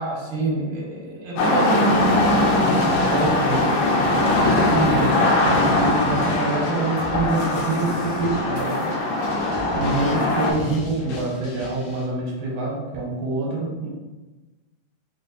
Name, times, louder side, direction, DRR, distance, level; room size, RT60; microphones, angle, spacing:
voice 1, 0.0-3.8 4.1-8.9 9.7-13.9, right 2 dB, 90° right, -2 dB, 2.5 m, -26 dB
sound 1, 1.4-10.5, left 2 dB, 90° left, 2.4 m, -21 dB
sound 2, 1.9-12.0, left 1 dB, 70° left, 1.9 m, -37 dB
6.2 x 2.3 x 2.5 m, 1.2 s
omnidirectional pair, 3.9 m